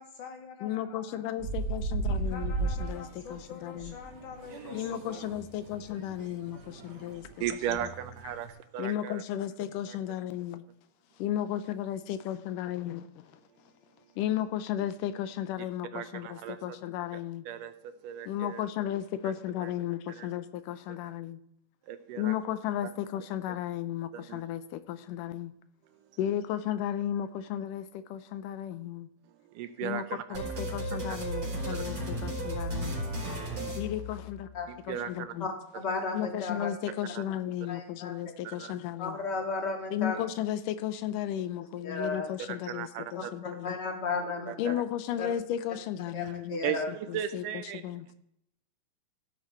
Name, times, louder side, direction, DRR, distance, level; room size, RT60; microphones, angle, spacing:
voice 1, 0.0-1.3 2.0-4.8, left 5 dB, 70° left, 1 dB, 3.6 m, -46 dB
voice 2, 0.6-3.9 4.7-7.3 7.8-7.9 8.8-10.6 11.2-13.3 14.2-17.5 18.3-21.4 22.2-25.5 26.2-29.1 29.8-30.0 30.3-33.0 33.6-34.5 34.9-35.5 36.1-39.3 39.9-43.8 44.6-46.6 47.1-47.4 47.7-48.1, left 11 dB, 90° left, 12 dB, 2.3 m, -34 dB
sound 1, 1.4-8.5, right 3 dB, 55° right, 3.7 m, -36 dB
voice 3, 6.6-9.2 9.9-10.0 15.9-16.6 17.5-18.6 19.2-19.3 19.6-19.7 20.1-20.3 21.9-22.3 24.1-24.4 29.5-30.2 30.9-31.2 31.7-31.9 34.7-35.3 37.1-37.2 38.4-38.7 42.5-43.3 44.5-44.8 46.2-46.4 46.6-47.8, right 9 dB, 85° right, 10 dB, 2.5 m, -37 dB
sound 2, 30.3-34.7, right 1 dB, 25° right, 4.4 m, -34 dB
voice 4, 35.4-36.7 37.7-38.2 39.0-40.2 41.8-42.3 43.1-43.2 43.6-44.5 45.2-45.3 46.1-46.9, left 4 dB, 35° left, 2 dB, 2.3 m, -33 dB
15.5 x 8.6 x 4.5 m, 0.75 s
omnidirectional pair, 3.7 m